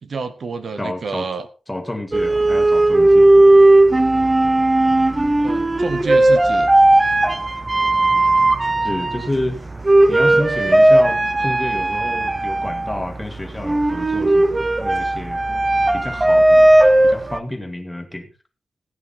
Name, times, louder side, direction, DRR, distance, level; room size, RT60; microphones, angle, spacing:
voice 1, 0.0-1.5 5.4-6.7, right 4 dB, 60° right, 11 dB, 1.1 m, -29 dB
voice 2, 0.8-1.3 1.7-3.4 8.8-9.6 10.1-15.4 15.9-16.7 17.0-18.3, left 1 dB, 10° left, 6 dB, 1.9 m, -29 dB
sound 1, 2.1-17.4, right 1 dB, 20° right, 0.8 m, -16 dB
15.5 x 8.8 x 4.2 m, 0.33 s
wide cardioid pair, 125°, 0 cm